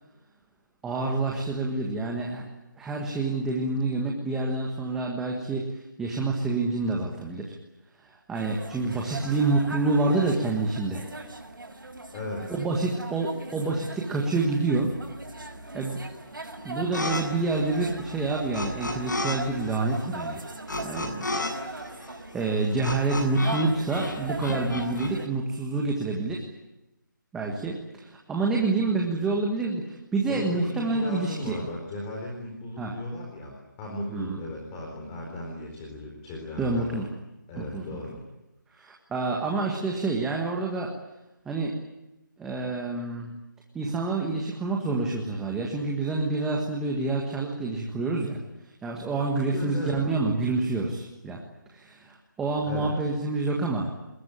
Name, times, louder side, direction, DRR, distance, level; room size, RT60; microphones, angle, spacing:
voice 1, 0.8-2.5 2.8-7.5 8.0-11.0 12.5-15.0 15.4-16.0 16.6-20.4 20.8-21.2 21.8-26.4 27.3-31.6 32.8-33.0 34.1-34.4 36.6-37.1 37.6-38.0 38.7-40.9 41.4-41.8 42.4-43.4 43.7-48.4 48.8-51.4 51.7-53.9, right 3 dB, 5° right, -1 dB, 1.6 m, -28 dB
sound 1, 8.3-25.3, right 2 dB, 85° right, 6.4 m, -40 dB
voice 2, 12.1-12.5 30.3-37.0 37.5-38.2 49.4-50.0 52.6-53.0, left 1 dB, 15° left, 0 dB, 4.2 m, -36 dB
sound 2, 16.9-17.2 17.5-19.4 19.6-23.6 23.9-25.1, left 2 dB, 65° left, 7.6 m, -32 dB
27.5 x 21.0 x 9.9 m, 0.95 s
figure-of-eight pair, 170°, 11 cm